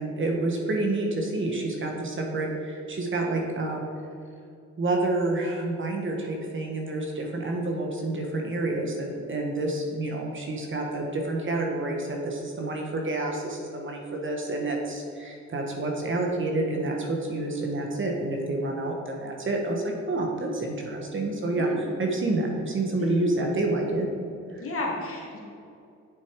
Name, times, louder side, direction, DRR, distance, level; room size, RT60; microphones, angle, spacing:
voice 1, 0.0-3.8 4.8-21.7 22.0-24.1 24.5-24.6, right 2 dB, 40° right, 1 dB, 1.7 m, -28 dB
voice 2, 24.6-25.4, left 2 dB, 45° left, -1 dB, 2.3 m, -32 dB
8.6 x 6.9 x 4.9 m, 2.4 s
cardioid pair, 90°, 30 cm